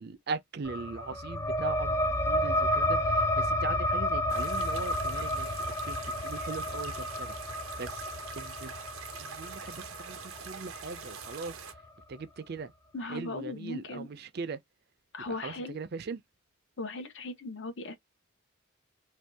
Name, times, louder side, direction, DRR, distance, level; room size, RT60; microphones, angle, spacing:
voice 1, 0.0-5.6 5.8-7.3 7.8-8.1 8.4-8.7 9.2-11.6 12.1-12.7 13.1-14.6 15.3-16.2, right 4 dB, 50° right, 0.4 m, -40 dB
sound 1, 0.6-11.8, left 1 dB, 15° left, 0.3 m, -31 dB
sound 2, 4.3-11.7, right 7 dB, 85° right, 0.7 m, -45 dB
voice 2, 12.9-14.1 15.1-15.8 16.8-18.0, left 2 dB, 60° left, 0.8 m, -38 dB
2.7 x 2.3 x 3.3 m
head